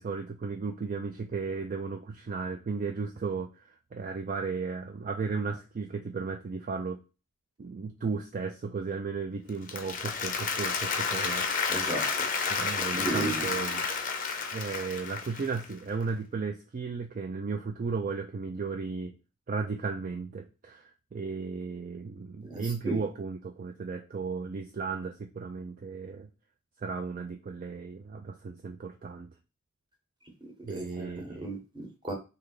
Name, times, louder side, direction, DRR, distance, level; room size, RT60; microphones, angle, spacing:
voice 1, 0.0-7.0 7.6-11.7 12.5-13.9 14.5-19.2 19.5-26.3 26.8-29.3 30.6-31.5, right 4 dB, 40° right, 0.3 m, -35 dB
Applause, 9.5-15.7, left 5 dB, 40° left, 0.5 m, -31 dB
voice 2, 11.7-12.1 12.9-13.4 22.4-23.0 30.7-32.1, right 1 dB, 20° right, 1.0 m, -35 dB
3.3 x 2.8 x 3.7 m
head